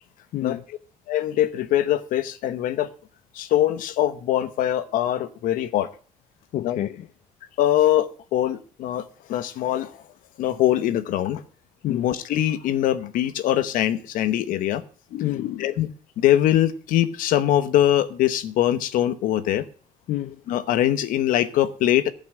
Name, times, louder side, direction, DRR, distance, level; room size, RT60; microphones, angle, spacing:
voice 1, 0.3-0.6 6.5-7.1 11.8-12.1 15.1-15.7 20.1-20.4, left 13 dB, 60° left, 0.6 m, -28 dB
voice 2, 1.1-2.9 3.3-5.9 6.6-6.8 7.6-10.0 10.4-11.4 11.9-14.8 15.6-15.9 16.2-19.6 20.5-22.1, left 12 dB, 75° left, 1.1 m, -22 dB
14.5 x 5.6 x 7.6 m
cardioid pair, 165°, 14 cm